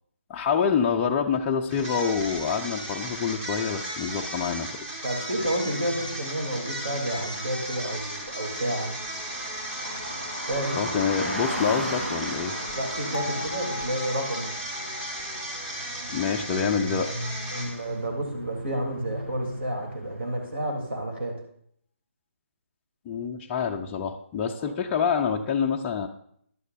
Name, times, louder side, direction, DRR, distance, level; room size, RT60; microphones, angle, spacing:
voice 1, 0.3-4.9 10.8-12.5 16.1-17.1 23.1-26.1, left 6 dB, 15° left, 1 dB, 0.4 m, -26 dB
sound 1, 1.7-18.0, right 1 dB, 20° right, 1.4 m, -35 dB
Car passing by, 4.7-20.8, equal, 85° right, 3.7 m, -38 dB
voice 2, 5.0-9.0 10.3-10.9 12.7-14.5 16.4-16.5 17.5-21.4 24.6-24.7, right 1 dB, 55° right, 3 dB, 3.1 m, -30 dB
Bell, 13.1-17.2, left 3 dB, 65° left, 0.6 m, -40 dB
14.5 x 11.5 x 2.6 m, 0.66 s
figure-of-eight pair, 145°, 7 cm